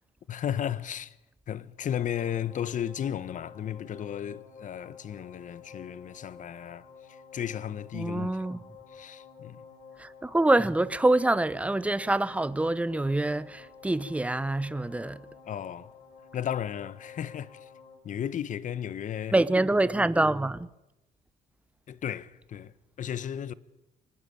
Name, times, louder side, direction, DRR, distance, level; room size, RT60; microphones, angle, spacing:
voice 1, 0.3-1.1 1.5-8.4 8.9-9.6 15.5-15.9 16.3-17.7 18.0-19.4 21.9-22.7 23.0-23.5, left 9 dB, 50° left, 1.2 m, -34 dB
sound 1, 1.8-18.0, left 6 dB, 80° left, 6.4 m, -51 dB
voice 2, 7.9-8.6 10.0-15.2 19.3-20.7, right 2 dB, 10° right, 0.9 m, -25 dB
24.5 x 19.5 x 8.8 m
cardioid pair, 110°, 17 cm